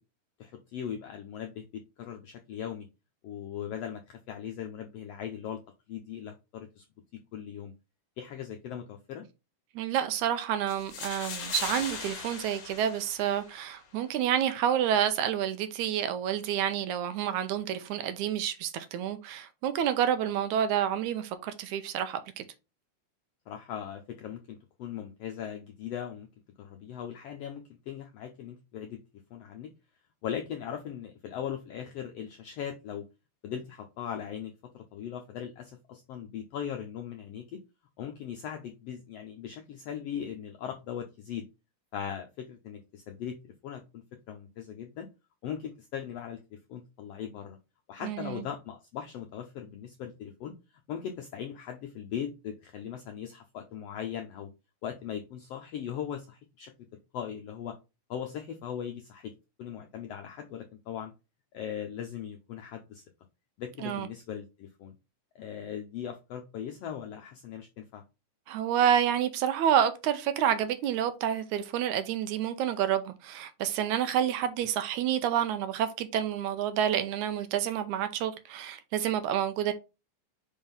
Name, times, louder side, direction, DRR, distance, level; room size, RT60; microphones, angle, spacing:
voice 1, 0.4-2.9 3.2-5.6 5.9-6.8 7.3-7.7 8.2-9.2 23.5-26.3 26.6-29.0 29.3-29.7 30.2-33.0 33.4-37.6 38.0-41.5 41.9-45.1 45.4-47.6 47.9-50.5 50.9-54.5 54.8-56.7 57.1-57.7 58.1-59.3 59.6-61.1 61.5-63.0 63.6-64.9 65.3-68.0, left 9 dB, 80° left, 1.4 m, -39 dB
voice 2, 9.8-22.4 48.0-48.5 63.8-64.1 68.5-79.7, right 9 dB, 75° right, 2.0 m, -29 dB
sound 1, 10.7-13.7, left 5 dB, 50° left, 2.0 m, -39 dB
5.3 x 3.6 x 5.5 m
omnidirectional pair, 3.6 m